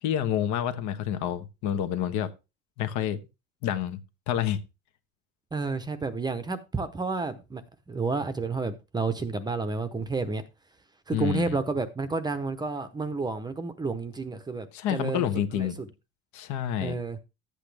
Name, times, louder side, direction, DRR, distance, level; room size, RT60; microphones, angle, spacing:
voice 1, 0.0-2.3 2.8-3.2 3.6-4.6 11.1-11.6 14.7-15.8 16.3-17.0, left 10 dB, 60° left, 1.3 m, -28 dB
voice 2, 5.5-7.6 7.9-10.4 11.1-15.3 15.5-15.9 16.8-17.2, right 4 dB, 10° right, 0.8 m, -30 dB
12.0 x 8.2 x 3.4 m
cardioid pair, 155°, 33 cm